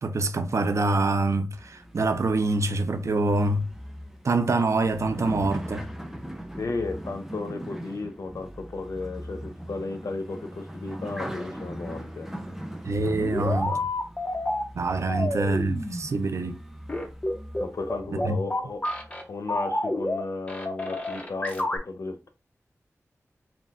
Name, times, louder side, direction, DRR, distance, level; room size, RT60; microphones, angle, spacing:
voice 1, 0.0-3.7 4.2-5.8 12.8-13.8 14.7-16.6 18.2-18.4, right 2 dB, 65° right, 0.6 m, -25 dB
sound 1, 1.5-18.2 18.8-19.3, equal, 5° right, 0.7 m, -40 dB
voice 2, 6.6-12.3 13.0-13.8 15.1-15.4 17.6-22.3, left 3 dB, 70° left, 0.8 m, -34 dB
sound 2, 12.8-14.6 15.1-16.1 16.9-19.2 19.5-20.2 20.5-21.8, left 1 dB, 25° left, 1.0 m, -29 dB
4.3 x 2.4 x 3.6 m
wide cardioid pair, 85°, 5 cm